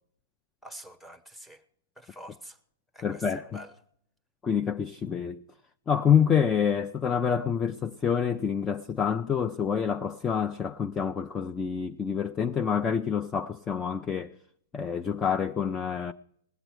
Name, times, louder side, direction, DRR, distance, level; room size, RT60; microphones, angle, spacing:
voice 1, 0.6-1.6 2.0-2.6 2.9-3.7, right 1 dB, 5° left, 1.0 m, -46 dB
voice 2, 3.0-3.6 4.4-5.4 5.9-14.3 14.7-16.1, left 7 dB, 20° left, 0.4 m, -27 dB
19.5 x 7.8 x 4.7 m
hypercardioid pair, 120°, 0 cm